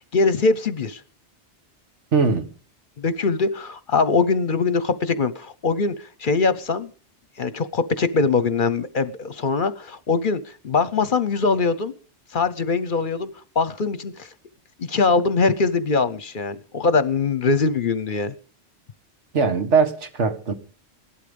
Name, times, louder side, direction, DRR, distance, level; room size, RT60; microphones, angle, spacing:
voice 1, 0.1-1.0 3.0-5.9 6.2-6.9 7.4-11.9 12.3-13.3 13.6-14.3 14.8-18.3, left 4 dB, 50° left, 0.9 m, -22 dB
voice 2, 2.1-2.5 19.3-20.5, right 5 dB, 80° right, 1.9 m, -20 dB
16.5 x 12.0 x 5.2 m
omnidirectional pair, 1.2 m